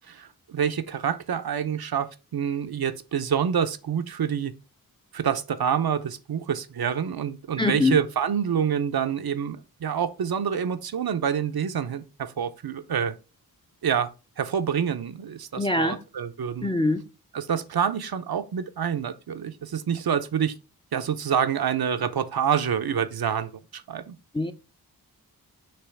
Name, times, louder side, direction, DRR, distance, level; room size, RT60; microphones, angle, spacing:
voice 1, 0.1-4.5 5.1-13.2 13.8-14.1 14.4-16.7 17.3-20.5 20.9-24.2, right 8 dB, 70° right, 0.8 m, -27 dB
voice 2, 7.6-8.0 15.6-16.0 16.6-17.0 24.3-24.5, left 2 dB, 15° left, 0.6 m, -23 dB
6.8 x 3.0 x 5.9 m
wide cardioid pair, 85°, 37 cm